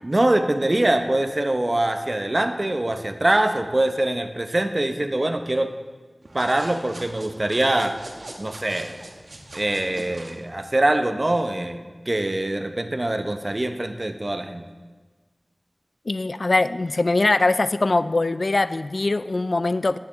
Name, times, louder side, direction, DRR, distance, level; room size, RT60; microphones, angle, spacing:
voice 1, 0.0-5.7 6.3-8.0 8.4-8.9 9.5-14.7, right 1 dB, 45° right, 7 dB, 0.8 m, -23 dB
sound 1, 6.2-10.4, right 2 dB, 85° right, 1.2 m, -42 dB
voice 2, 16.1-20.0, left 2 dB, 80° left, 14 dB, 0.3 m, -22 dB
15.0 x 9.3 x 3.9 m, 1.4 s
wide cardioid pair, 55°, 0 cm